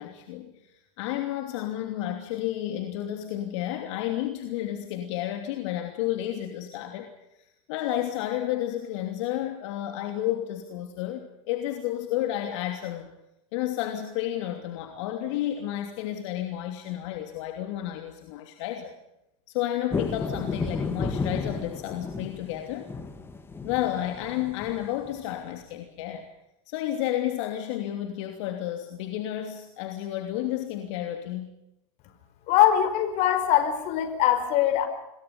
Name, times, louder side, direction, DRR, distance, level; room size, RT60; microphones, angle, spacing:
voice 1, 0.0-7.1 7.4-13.1 13.5-19.0 19.5-22.9 23.6-26.3 26.7-31.5, left 12 dB, 65° left, 5 dB, 2.9 m, -31 dB
sound 1, 19.9-25.3, left 4 dB, 15° left, 2.7 m, -33 dB
voice 2, 32.5-34.9, left 11 dB, 45° left, 10 dB, 5.1 m, -22 dB
28.0 x 22.5 x 5.5 m, 0.88 s
supercardioid pair, 135°, 16 cm